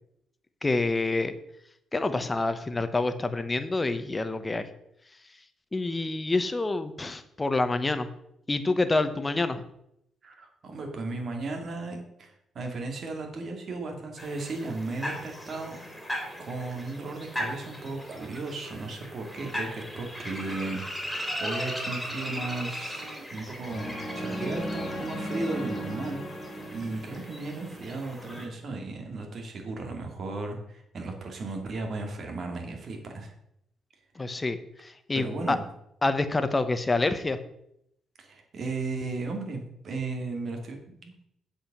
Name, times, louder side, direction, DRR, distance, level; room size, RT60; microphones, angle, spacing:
voice 1, 0.6-1.3 1.9-4.7 5.7-8.1 8.5-9.6 34.2-35.6 36.0-37.4, left 2 dB, 20° left, 10 dB, 0.9 m, -27 dB
voice 2, 10.2-16.0 16.4-20.8 21.1-33.3 35.1-35.6 38.2-41.3, right 3 dB, 50° right, 3 dB, 2.3 m, -35 dB
sound 1, 14.2-28.5, equal, 5° left, 2.9 m, -38 dB
sound 2, 23.7-27.9, equal, 40° left, 2.0 m, -36 dB
8.1 x 5.1 x 7.3 m, 0.77 s
cardioid pair, 90°, 0 cm